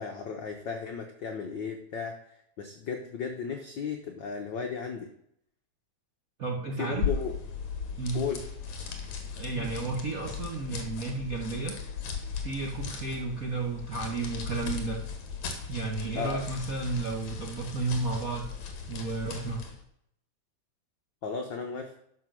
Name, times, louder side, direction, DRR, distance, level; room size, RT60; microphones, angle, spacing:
voice 1, 0.0-2.2 2.6-5.1 6.8-7.4 8.1-8.4 16.1-16.4 21.2-21.9, left 6 dB, 85° left, 4 dB, 1.0 m, -35 dB
voice 2, 6.4-7.1 8.0-8.2 9.4-11.7 12.4-15.0 15.7-18.4 18.9-19.6, right 3 dB, 55° right, -1 dB, 0.9 m, -32 dB
sound 1, 6.9-19.8, left 6 dB, 70° left, 2.9 m, -37 dB
10.5 x 6.1 x 6.3 m, 0.73 s
omnidirectional pair, 3.4 m